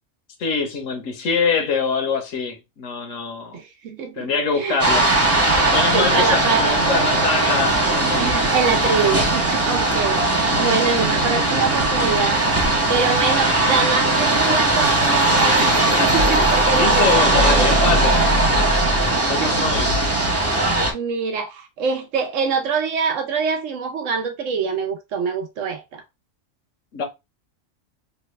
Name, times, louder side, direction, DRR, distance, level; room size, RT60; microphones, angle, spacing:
voice 1, 0.4-3.6 4.2-5.1 5.5-8.5 10.3-10.8 15.8-16.3 16.7-18.2 19.2-19.9 26.9-27.0, left 4 dB, 75° left, 1.2 m, -24 dB
voice 2, 3.5-4.8 5.1-5.2 5.9-6.6 8.2-15.7 16.0-17.7 18.8-19.9 20.9-26.0, right 5 dB, 70° right, 1.0 m, -25 dB
sound 1, 4.8-20.9, right 2 dB, 15° right, 0.5 m, -18 dB
3.3 x 2.2 x 3.0 m
omnidirectional pair, 1.4 m